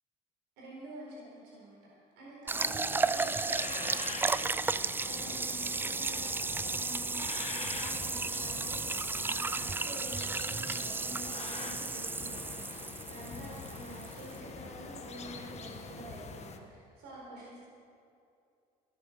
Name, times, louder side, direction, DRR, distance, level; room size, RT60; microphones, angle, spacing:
voice 1, 0.6-17.6, right 1 dB, 80° right, -4 dB, 4.3 m, -48 dB
sound 1, 2.5-16.6, left 5 dB, 40° left, 1.4 m, -44 dB
sound 2, 2.5-14.4, right 4 dB, 10° right, 0.3 m, -34 dB
16.0 x 9.4 x 6.7 m, 2.5 s
cardioid pair, 105°, 18 cm